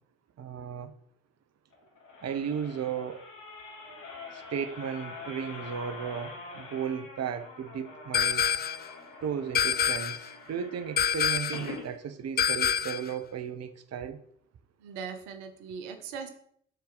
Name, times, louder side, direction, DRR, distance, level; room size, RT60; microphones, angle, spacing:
voice 1, 0.4-0.9 2.2-3.3 4.3-8.4 9.2-14.2, right 7 dB, 50° right, 0.8 m, -35 dB
sound 1, 1.7-11.9 12.4-12.5 12.7-12.8, left 3 dB, 70° left, 2.8 m, -45 dB
sound 2, 8.1-8.9 9.5-10.3 11.0-11.7 12.4-13.1, left 8 dB, 30° left, 0.4 m, -26 dB
voice 2, 14.8-16.3, right 6 dB, 85° right, 0.9 m, -39 dB
12.0 x 4.3 x 3.9 m
hypercardioid pair, 45°, 33 cm